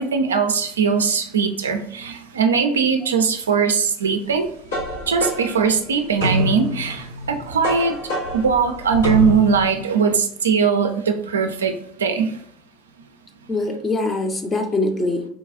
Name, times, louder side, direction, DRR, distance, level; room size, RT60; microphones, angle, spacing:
voice 1, 0.0-4.5 5.1-8.0 8.3-12.3, right 6 dB, 75° right, 5 dB, 0.3 m, -20 dB
sound 1, 4.3-9.7, left 1 dB, 80° left, 1.5 m, -27 dB
voice 2, 13.5-15.2, left 2 dB, 20° left, 5 dB, 0.6 m, -23 dB
3.9 x 2.3 x 2.5 m, 0.64 s
figure-of-eight pair, 70°, 0 cm